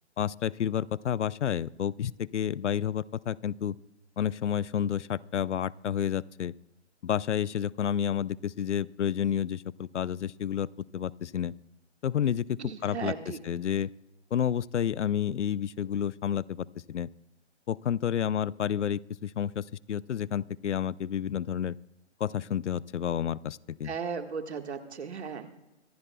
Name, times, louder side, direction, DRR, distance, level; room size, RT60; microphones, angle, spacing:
voice 1, 0.2-3.8 4.2-6.5 7.0-10.7 10.9-11.5 12.0-13.9 14.3-17.1 17.7-21.8 22.2-23.9, left 9 dB, 75° left, 23 dB, 0.5 m, -30 dB
voice 2, 12.6-13.4 23.8-25.5, right 6 dB, 65° right, 6 dB, 1.7 m, -36 dB
25.0 x 15.0 x 2.3 m, 0.99 s
figure-of-eight pair, 145°, 36 cm